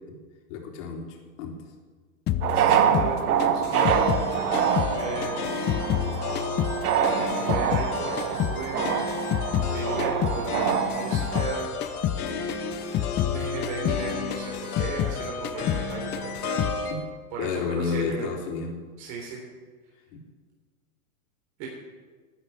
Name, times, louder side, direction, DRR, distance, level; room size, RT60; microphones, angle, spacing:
voice 1, 0.5-1.5 16.9-17.0 17.4-18.7 20.1-20.2, left 5 dB, 55° left, 2 dB, 3.6 m, -31 dB
sound 1, 2.3-5.0 5.2-7.9 8.2-11.6 11.8-12.2 12.5-15.2 15.4-15.9 16.1-16.8, left 11 dB, 25° left, 0.6 m, -29 dB
sound 2, 2.4-11.4, right 8 dB, 75° right, 1.6 m, -26 dB
voice 2, 2.5-4.1 4.9-5.4 7.1-8.9 9.7-11.7 13.3-16.6 17.3-18.3 19.0-19.4 21.6-21.7, right 4 dB, 50° right, -3 dB, 3.9 m, -35 dB
sound 3, 3.7-16.9, left 5 dB, 80° left, 3.4 m, -33 dB
13.0 x 9.6 x 9.4 m, 1.5 s
supercardioid pair, 135°, 44 cm